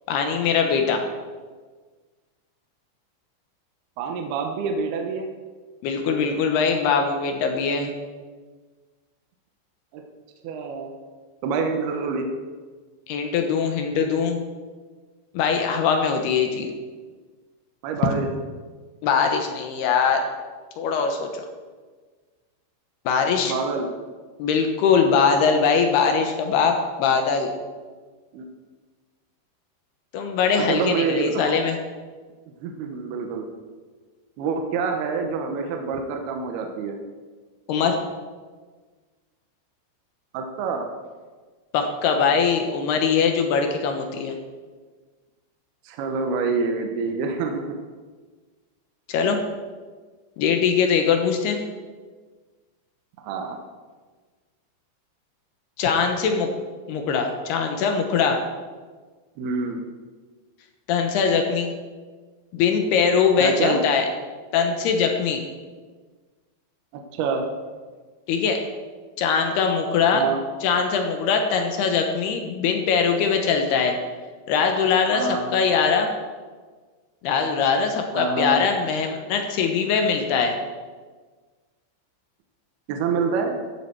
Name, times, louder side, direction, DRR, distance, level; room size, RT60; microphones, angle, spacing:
voice 1, 0.1-1.0 5.8-7.9 13.1-14.4 15.3-16.7 19.0-20.3 20.8-21.4 23.1-23.5 24.4-27.5 30.1-31.8 37.7-38.0 41.7-44.4 49.1-49.4 50.4-51.6 55.8-56.5 56.9-58.4 60.9-61.7 62.5-64.1 64.5-65.4 68.3-68.6 69.2-70.2 70.6-74.0 74.5-76.1 77.2-80.6, left 6 dB, 75° left, 4 dB, 2.6 m, -21 dB
voice 2, 4.0-5.3 9.9-10.0 10.4-10.9 11.4-12.3 17.8-18.3 23.4-23.9 28.3-28.4 30.6-31.6 32.6-33.5 34.4-37.0 40.3-40.9 45.8-47.7 53.2-53.6 59.4-59.8 63.4-63.8 66.9-67.4 70.1-70.4 75.1-75.5 78.2-78.6 82.9-83.5, right 5 dB, 75° right, 4 dB, 2.5 m, -26 dB
14.0 x 10.5 x 4.6 m, 1.4 s
omnidirectional pair, 5.7 m